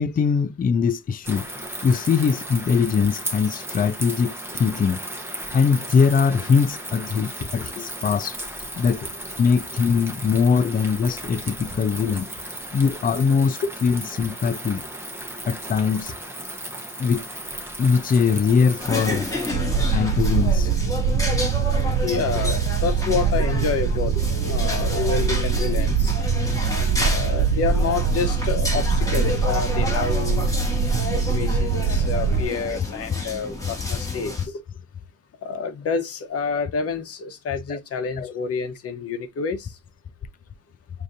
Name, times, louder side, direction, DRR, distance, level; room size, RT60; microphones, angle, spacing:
voice 1, 0.0-1.5 1.8-5.0 5.5-8.4 8.7-9.0 9.4-12.3 12.7-14.8 15.5-16.1 17.0-17.3 17.8-19.3 19.9-20.7 22.4-22.6 24.8-25.5 32.6-32.7 37.7-37.8 38.2-38.3, left 5 dB, 30° left, 0.5 m, -22 dB
sound 1, 1.2-19.5, right 1 dB, 10° right, 1.0 m, -35 dB
sound 2, 18.8-34.5, left 2 dB, 10° left, 2.1 m, -30 dB
sound 3, 19.5-32.5, right 6 dB, 75° right, 0.5 m, -23 dB
voice 2, 21.7-24.1 24.5-26.1 26.7-30.8 31.1-34.3 35.4-39.7, left 5 dB, 50° left, 1.0 m, -28 dB
6.3 x 2.8 x 2.5 m
cardioid pair, 90°, 30 cm